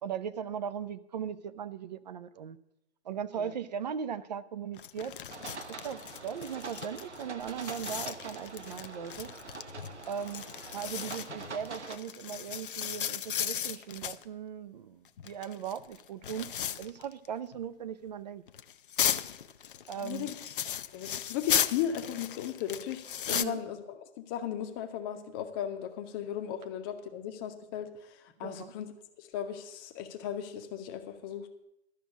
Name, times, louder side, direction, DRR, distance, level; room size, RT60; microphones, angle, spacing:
voice 1, 0.0-2.6 3.0-5.1 5.7-9.3 10.1-10.4 10.7-16.5 16.8-18.4 19.9-20.3 23.3-23.6 28.4-28.7, right 8 dB, 40° right, 13 dB, 0.6 m, -38 dB
sound 1, 4.7-14.2 15.0-17.3 17.5-17.6 18.5-23.4, left 9 dB, 50° left, 0.6 m, -36 dB
sound 2, 5.3-12.0, right 4 dB, 80° right, 1.1 m, -44 dB
voice 2, 20.0-20.4 20.9-23.8 24.2-28.9 29.2-31.5, left 10 dB, 20° left, 6 dB, 0.8 m, -36 dB
12.5 x 6.1 x 8.2 m, 0.82 s
figure-of-eight pair, 135°, 34 cm